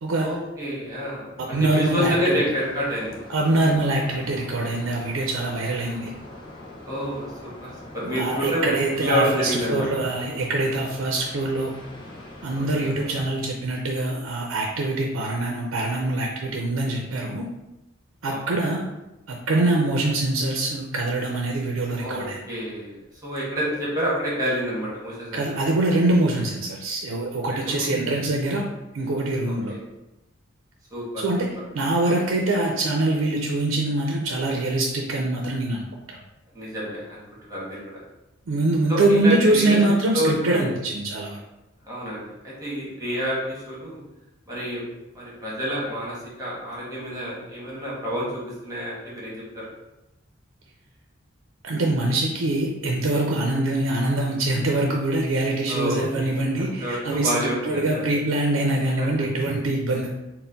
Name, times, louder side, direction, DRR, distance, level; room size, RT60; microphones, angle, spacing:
voice 1, 0.2-3.1 6.8-9.9 12.5-12.9 18.2-18.6 21.9-23.0 23.2-25.6 27.5-27.9 29.7-29.8 30.9-31.2 36.5-38.0 38.9-39.8 40.1-40.7 41.8-44.0 44.5-44.8 45.1-49.6 55.7-58.0 59.0-59.3, equal, 20° right, -6 dB, 1.3 m, -28 dB
voice 2, 1.5-2.4 3.3-6.1 8.0-11.7 12.4-17.5 18.2-18.8 19.3-22.4 25.3-28.7 28.9-29.7 31.2-31.5 31.7-35.8 36.1-36.2 38.5-41.4 51.6-60.1, right 2 dB, 85° right, 0 dB, 0.5 m, -24 dB
sound 1, 1.8-13.3, left 1 dB, 25° left, 0.7 m, -43 dB
4.2 x 2.1 x 3.9 m, 0.97 s
head